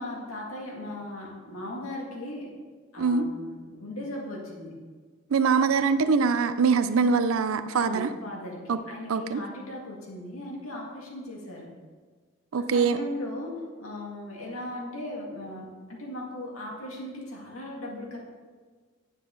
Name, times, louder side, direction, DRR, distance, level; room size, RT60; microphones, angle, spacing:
voice 1, 0.0-2.5 2.9-4.8 7.7-11.7 12.7-18.2, left 1 dB, 80° left, -2 dB, 2.1 m, -38 dB
voice 2, 5.3-8.1 8.7-8.8 9.1-9.4 12.5-13.0, right 5 dB, 75° right, 11 dB, 0.5 m, -23 dB
9.4 x 7.4 x 3.8 m, 1.5 s
head